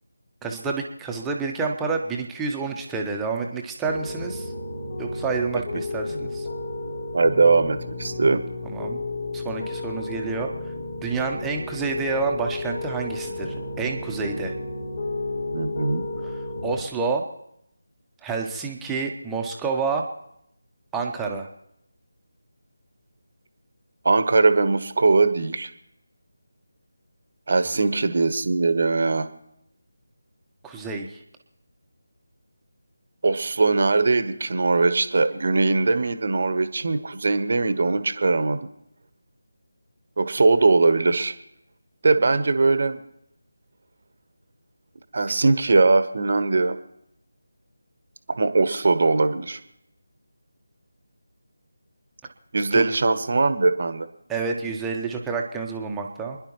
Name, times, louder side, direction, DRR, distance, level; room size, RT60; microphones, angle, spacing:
voice 1, 0.4-4.5 5.0-6.5 8.6-9.0 9.3-10.5 11.0-14.5 16.2-16.3 16.6-17.3 18.2-20.1 20.9-21.5 30.6-31.2 52.7-52.9 54.3-56.4, right 4 dB, 5° right, 1 dB, 1.0 m, -28 dB
Piano, 3.9-16.8, left 2 dB, 45° left, 4.8 m, -32 dB
voice 2, 7.1-8.4 15.5-16.0 24.0-25.7 27.5-29.3 33.2-38.7 40.2-41.3 42.0-43.0 45.1-46.8 48.4-49.6 52.5-54.1, right 3 dB, 45° right, 11 dB, 1.1 m, -20 dB
28.5 x 10.5 x 3.1 m, 0.77 s
figure-of-eight pair, 160°, 0 cm